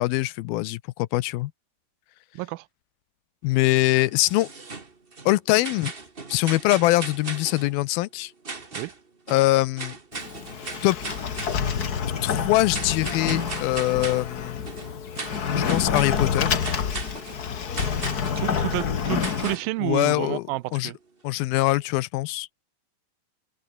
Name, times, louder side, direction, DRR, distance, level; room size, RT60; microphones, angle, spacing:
voice 1, 0.0-1.5 3.4-4.5 5.3-5.9 6.3-8.3 9.3-9.9 10.8-11.0 12.2-14.6 15.6-16.5 19.8-20.4 20.7-20.9 21.2-22.5, left 18 dB, 80° left, 2.5 m, -23 dB
voice 2, 2.3-2.7 8.8-8.9 18.4-21.0, right 20 dB, 80° right, 2.3 m, -30 dB
sound 1, 3.8-5.3 5.6-7.7 8.4-9.0 9.3-11.9 12.7-14.3 14.6-16.2 16.6-17.4 17.7-18.5 19.2-19.7, right 4 dB, 30° right, 0.9 m, -38 dB
Sliding door, 10.1-19.5, left 7 dB, 65° left, 0.9 m, -28 dB
open air
omnidirectional pair, 4.4 m